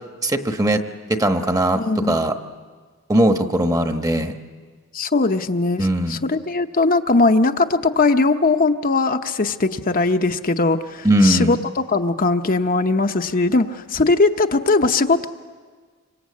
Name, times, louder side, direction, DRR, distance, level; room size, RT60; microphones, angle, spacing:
voice 1, 0.2-0.8 1.1-2.3 3.1-4.3 5.8-6.2 11.0-11.6, right 1 dB, 15° right, 7 dB, 1.1 m, -19 dB
voice 2, 1.7-2.2 4.9-11.6 11.9-15.3, left 3 dB, 40° left, 6 dB, 0.8 m, -19 dB
26.5 x 25.0 x 8.5 m, 1.5 s
head